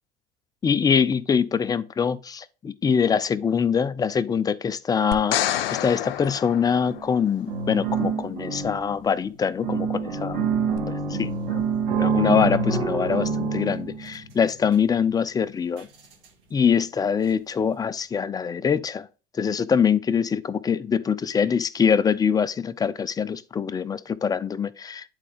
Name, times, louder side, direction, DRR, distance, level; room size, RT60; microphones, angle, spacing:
voice 1, 0.6-10.5 10.9-11.6 12.0-15.9 16.5-19.1 19.3-25.1, left 7 dB, 15° left, 0.4 m, -24 dB
sound 1, 5.1-7.4 10.8-10.9, left 12 dB, 70° left, 0.5 m, -28 dB
sound 2, 6.8-7.1 7.5-9.2 9.6-14.8 15.8-15.9 16.2-16.3, right 5 dB, 70° right, 2.2 m, -26 dB
9.8 x 4.0 x 3.4 m
hypercardioid pair, 80°, 29 cm